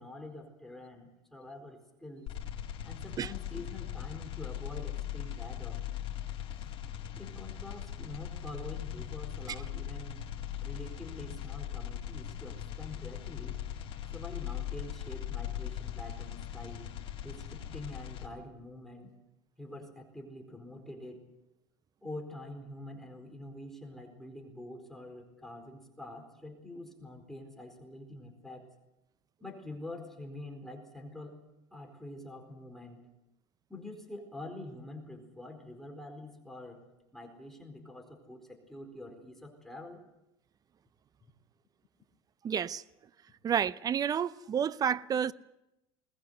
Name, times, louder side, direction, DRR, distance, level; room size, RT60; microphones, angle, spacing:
voice 1, 0.0-2.3 2.8-5.8 7.2-10.2 10.6-13.6 14.1-17.0 17.2-19.1 19.6-21.2 22.0-28.7 29.4-31.4 31.7-33.1 33.7-36.9 37.1-40.0, left 1 dB, 5° left, 4.2 m, -46 dB
sound 1, 2.3-18.3, left 11 dB, 45° left, 4.3 m, -39 dB
voice 2, 42.4-42.8 43.4-45.3, right 8 dB, 30° right, 0.7 m, -30 dB
21.0 x 20.0 x 8.0 m
supercardioid pair, 105°, 13 cm